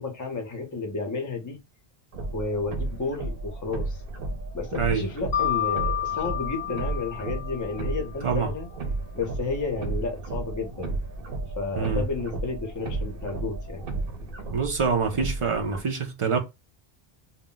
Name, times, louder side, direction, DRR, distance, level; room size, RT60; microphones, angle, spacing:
voice 1, 0.0-1.6 2.3-4.0 4.5-8.7 9.1-11.0 11.6-13.8, left 3 dB, 25° left, 0.5 m, -32 dB
sound 1, 2.1-15.8, right 2 dB, 65° right, 0.8 m, -33 dB
Mallet percussion, 5.3-8.1, left 11 dB, 90° left, 0.9 m, -30 dB
voice 2, 14.5-16.4, right 5 dB, 50° right, 0.4 m, -25 dB
2.2 x 2.0 x 3.8 m
omnidirectional pair, 1.0 m